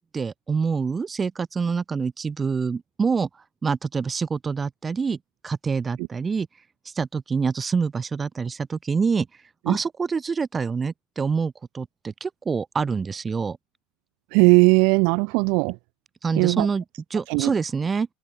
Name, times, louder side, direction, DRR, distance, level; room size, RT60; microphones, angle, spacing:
voice 1, 0.1-3.3 3.6-5.2 5.4-6.5 6.9-9.3 9.6-13.6 16.2-16.8 17.1-18.1, right 5 dB, 25° right, 6.9 m, -26 dB
voice 2, 14.3-15.8 16.4-16.7 17.3-17.5, right 32 dB, 65° right, 1.5 m, -18 dB
open air
hypercardioid pair, 80°, 0 cm